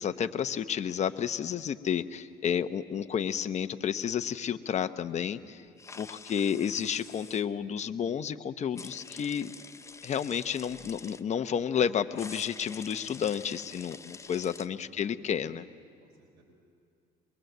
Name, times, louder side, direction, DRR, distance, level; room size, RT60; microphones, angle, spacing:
voice 1, 0.0-5.6 6.0-9.5 10.0-15.7, left 8 dB, 45° left, 9 dB, 0.9 m, -31 dB
sound 1, 5.8-7.4 8.7-11.2 12.1-14.7, left 4 dB, 15° left, 0.6 m, -47 dB
voice 2, 12.1-12.6 14.6-14.7 15.0-15.2 16.0-16.4, right 4 dB, 75° right, -3 dB, 4.7 m, -64 dB
23.0 x 22.5 x 8.0 m, 2.3 s
cardioid pair, 110°, 17 cm